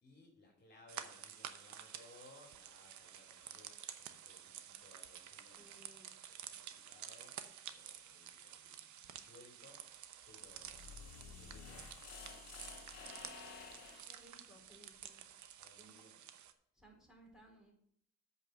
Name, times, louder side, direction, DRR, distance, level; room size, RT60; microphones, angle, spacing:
voice 1, 0.0-7.4 7.7-9.9 10.3-13.7 14.5-14.8 15.6-16.2, left 2 dB, 35° left, 0 dB, 2.8 m, -64 dB
sound 1, 0.9-16.5, right 10 dB, 70° right, 0.9 m, -51 dB
voice 2, 5.5-6.1 14.0-15.2 15.8-16.0 16.7-17.7, right 1 dB, ahead, -1 dB, 3.5 m, -62 dB
sound 2, 10.3-14.2, left 5 dB, 55° left, 1.9 m, -52 dB
8.2 x 6.0 x 6.5 m, 0.68 s
cardioid pair, 90°, 30 cm